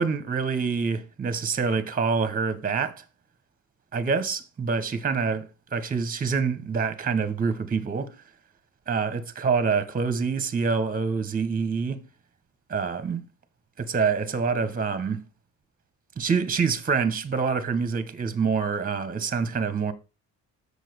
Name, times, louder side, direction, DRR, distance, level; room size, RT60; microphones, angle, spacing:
voice 1, 0.0-3.0 3.9-8.1 8.9-12.0 12.7-13.2 13.8-15.2 16.2-19.9, right 5 dB, 25° right, 1.3 m, -26 dB
7.5 x 6.8 x 6.8 m
cardioid pair, 125°, 31 cm